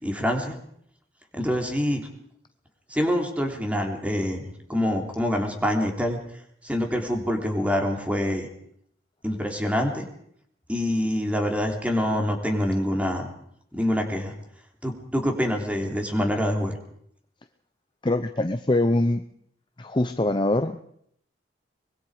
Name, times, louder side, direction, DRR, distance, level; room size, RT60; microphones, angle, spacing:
voice 1, 0.0-0.6 1.3-2.0 2.9-4.4 4.7-6.2 6.6-8.5 9.2-10.0 10.7-13.3 13.7-14.3 14.8-16.7, equal, 10° right, 3 dB, 3.3 m, -25 dB
voice 2, 18.0-19.2 19.8-20.8, left 2 dB, 25° left, 9 dB, 0.8 m, -23 dB
24.5 x 22.0 x 5.0 m, 0.68 s
head